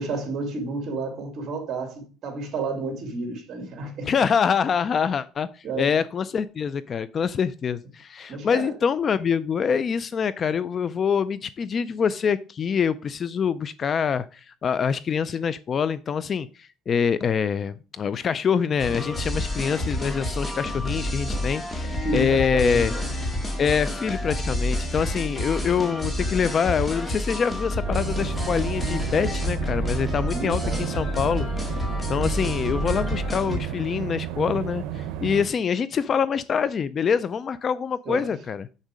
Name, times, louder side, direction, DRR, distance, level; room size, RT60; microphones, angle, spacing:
voice 1, 0.0-4.1 5.6-6.0 8.3-8.7 21.3-21.4 21.8-23.2 30.2-31.0 38.0-38.4, right 3 dB, 45° right, 3.3 m, -31 dB
voice 2, 4.1-22.9 23.6-31.5 32.1-38.7, left 6 dB, 35° left, 0.4 m, -25 dB
sound 1, 18.8-33.6, left 1 dB, 15° left, 1.8 m, -29 dB
sound 2, 27.8-35.5, right 11 dB, 85° right, 0.7 m, -32 dB
7.2 x 6.5 x 4.9 m
cardioid pair, 150°, 0 cm